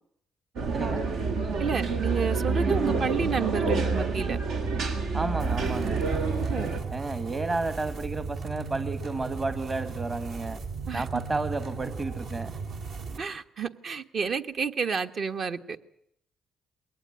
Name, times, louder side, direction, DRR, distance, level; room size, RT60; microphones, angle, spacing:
sound 1, 0.6-6.8, right 4 dB, 90° right, 3.9 m, -28 dB
voice 1, 1.6-4.4 6.3-6.8 10.9-11.0 13.2-15.9, right 6 dB, 55° right, 1.4 m, -30 dB
voice 2, 5.1-6.0 6.9-10.6 10.9-12.5, right 3 dB, 30° right, 1.3 m, -32 dB
hell gear, 5.4-13.2, right 4 dB, 70° right, 3.2 m, -36 dB
21.5 x 18.5 x 9.7 m
cardioid pair, 90°, 0 cm